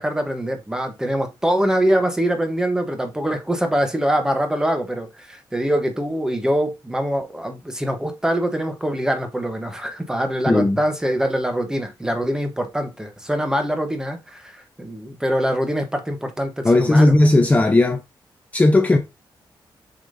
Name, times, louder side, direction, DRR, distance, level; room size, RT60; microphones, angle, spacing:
voice 1, 0.0-17.1, equal, 10° right, 1.1 m, -24 dB
voice 2, 10.5-10.8 16.6-18.0 18.5-19.0, left 2 dB, 15° left, 0.7 m, -15 dB
7.1 x 5.1 x 2.7 m
wide cardioid pair, 175°, 9 cm